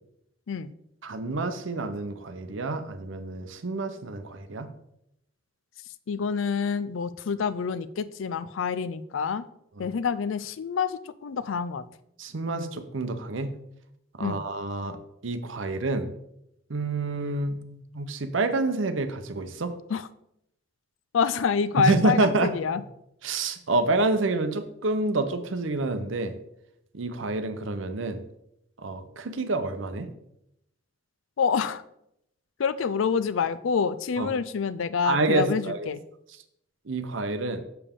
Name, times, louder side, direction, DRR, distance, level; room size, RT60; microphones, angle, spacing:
voice 1, 1.0-4.7 9.8-9.9 12.2-13.5 14.2-15.0 15.2-16.1 16.7-17.6 17.9-19.7 21.8-22.5 23.2-26.3 26.9-28.2 28.8-30.1 34.2-34.3 35.0-35.9 36.9-37.6, right 2 dB, 70° right, 10 dB, 0.7 m, -28 dB
voice 2, 6.1-9.4 9.8-11.8 14.2-14.4 19.9-20.0 21.1-22.8 31.4-31.8 32.6-36.0, left 6 dB, 75° left, 15 dB, 0.4 m, -27 dB
6.9 x 6.8 x 3.6 m, 0.78 s
head